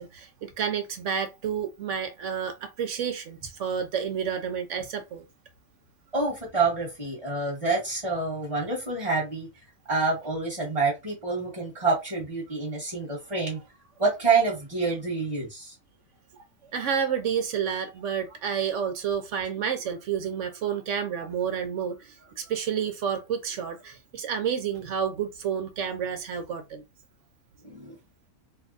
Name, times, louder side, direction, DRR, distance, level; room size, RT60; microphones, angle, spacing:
voice 1, 0.0-5.2 16.7-26.8, right 7 dB, 65° right, 0.9 m, -30 dB
voice 2, 6.1-9.5 9.9-13.6 14.0-15.7 27.6-27.9, right 4 dB, 25° right, 1.1 m, -27 dB
2.7 x 2.3 x 3.8 m
omnidirectional pair, 1.5 m